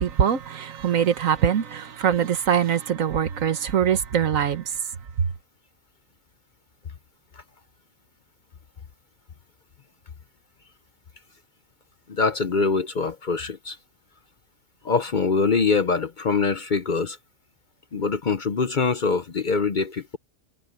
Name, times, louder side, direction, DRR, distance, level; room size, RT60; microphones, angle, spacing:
voice 1, 0.0-4.6, right 8 dB, 80° right, 1.5 m, -23 dB
voice 2, 12.1-13.8 14.8-17.2 17.9-20.2, left 4 dB, 45° left, 0.8 m, -24 dB
omnidirectional pair, 1.4 m